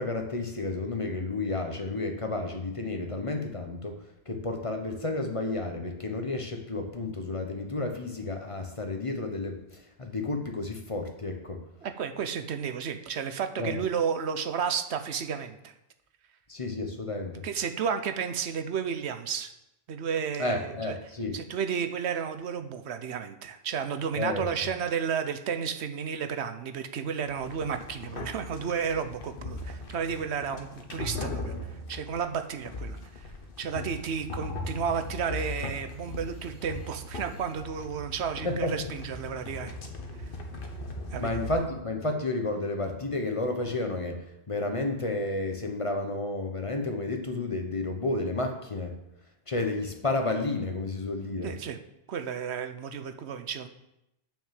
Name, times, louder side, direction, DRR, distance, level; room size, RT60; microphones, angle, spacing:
voice 1, 0.0-11.6 13.6-13.8 16.5-17.4 20.4-21.4 24.2-24.5 38.4-38.9 41.2-49.0 49.5-51.5, left 2 dB, 30° left, 4 dB, 1.0 m, -31 dB
voice 2, 11.8-15.7 17.4-19.5 19.9-20.9 21.3-33.0 33.6-39.7 41.1-41.4 51.4-51.8 52.1-53.7, right 7 dB, 80° right, 8 dB, 1.0 m, -32 dB
sound 1, 27.3-41.6, left 2 dB, 55° left, 1.3 m, -39 dB
6.9 x 6.3 x 7.4 m, 0.87 s
omnidirectional pair, 1.1 m